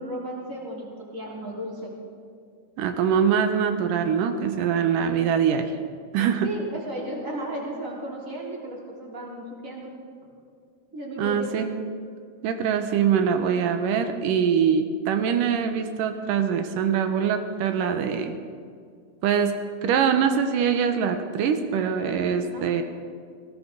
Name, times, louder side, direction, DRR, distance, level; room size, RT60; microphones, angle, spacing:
voice 1, 0.0-1.9 6.4-10.0 10.9-11.6 22.4-22.7, right 1 dB, 20° right, -3 dB, 3.1 m, -34 dB
voice 2, 2.8-5.7 6.1-6.5 11.2-11.8 12.4-18.4 19.2-22.8, right 7 dB, 70° right, 7 dB, 2.3 m, -23 dB
18.5 x 17.5 x 3.9 m, 2.2 s
omnidirectional pair, 4.3 m